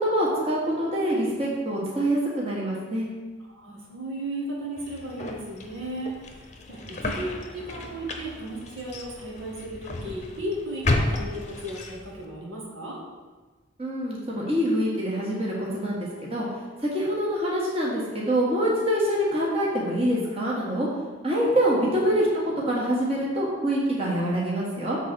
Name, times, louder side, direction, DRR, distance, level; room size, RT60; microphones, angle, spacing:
voice 1, 0.0-3.1 13.8-16.5 16.8-20.9 21.2-22.3 22.6-25.0, equal, 30° right, -5 dB, 1.6 m, -25 dB
voice 2, 3.5-13.0, right 1 dB, 90° right, -3 dB, 1.8 m, -35 dB
sound 1, 4.8-12.3, left 2 dB, 35° left, 0.8 m, -33 dB
7.5 x 4.0 x 6.3 m, 1.3 s
head